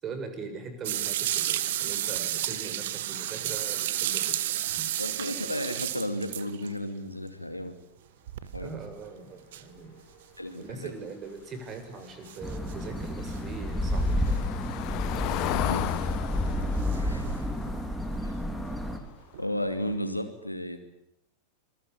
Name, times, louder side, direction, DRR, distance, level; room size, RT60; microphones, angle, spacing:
voice 1, 0.0-4.4 4.8-4.9 8.6-10.0 10.6-14.5 15.1-16.0, right 4 dB, 25° right, 8 dB, 7.3 m, -41 dB
sound 1, 0.8-6.8 8.3-8.9 9.5-9.6 10.9-11.0 12.2-12.8 13.3-13.4 14.3-14.4 15.7-15.9 16.8-17.0 19.3-19.5, right 13 dB, 55° right, 1.7 m, -31 dB
voice 2, 5.0-7.8 8.5-8.8 10.4-10.9 15.4-15.8 16.9-17.5 18.2-18.3 19.4-20.8, left 1 dB, 85° left, 8 dB, 2.7 m, -34 dB
Car passing by / Engine, 12.2-19.1 19.4-19.7 20.0-20.1, left 14 dB, 40° left, 2.0 m, -36 dB
sound 2, 12.4-19.0, left 1 dB, ahead, 3.9 m, -30 dB
27.5 x 22.5 x 8.7 m, 0.76 s
figure-of-eight pair, 90°, 0 cm